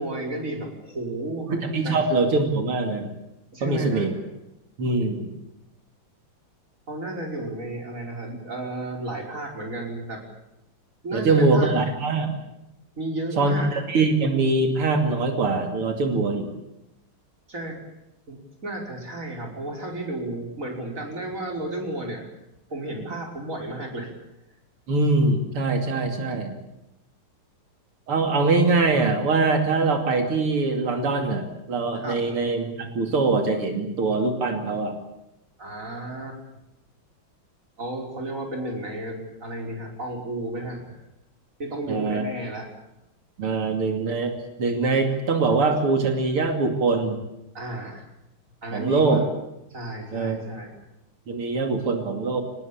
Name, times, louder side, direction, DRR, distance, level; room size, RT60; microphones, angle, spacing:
voice 1, 0.0-1.5 1.8-2.0 3.5-4.1 6.9-10.2 11.0-11.7 13.0-13.7 17.5-17.8 18.3-22.3 22.7-24.1 32.0-32.2 35.6-36.4 37.8-41.0 41.6-42.7 47.5-48.1 48.6-49.3 49.7-50.7, right 1 dB, 35° right, 1 dB, 5.6 m, -33 dB
voice 2, 1.5-3.1 3.6-4.1 4.8-5.3 11.1-12.4 13.4-16.5 24.9-26.5 28.1-35.0 41.9-42.2 43.4-44.3 44.6-47.2 48.7-49.2 50.1-50.4 51.3-52.4, right 3 dB, 85° right, 5 dB, 3.5 m, -23 dB
25.0 x 19.5 x 8.7 m, 0.90 s
omnidirectional pair, 2.4 m